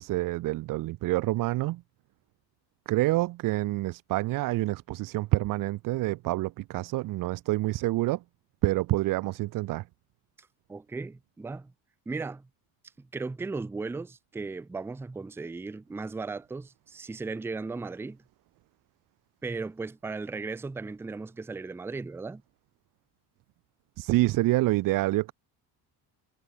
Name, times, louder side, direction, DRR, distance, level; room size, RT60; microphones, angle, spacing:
voice 1, 0.0-1.8 2.9-8.2 8.6-9.8 24.0-25.3, right 18 dB, 55° right, 0.7 m, -27 dB
voice 2, 10.7-11.7 12.1-12.5 13.0-18.2 19.4-22.4, right 3 dB, 5° right, 0.5 m, -36 dB
cardioid pair, 160°, 39 cm